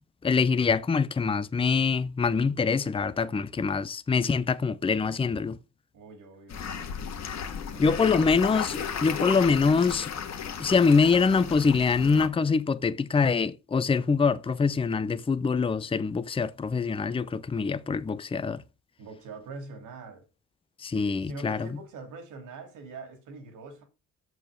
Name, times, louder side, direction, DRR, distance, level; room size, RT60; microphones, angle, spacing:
voice 1, 0.2-5.6 7.8-10.1 10.6-18.6 20.8-21.7, left 5 dB, 20° left, 0.6 m, -24 dB
voice 2, 5.9-7.0 7.7-8.3 19.0-20.2 21.2-23.8, right 3 dB, 80° right, 3.1 m, -44 dB
sound 1, 6.5-12.3, left 7 dB, 60° left, 1.7 m, -34 dB
6.7 x 6.3 x 6.7 m
cardioid pair, 90°, 30 cm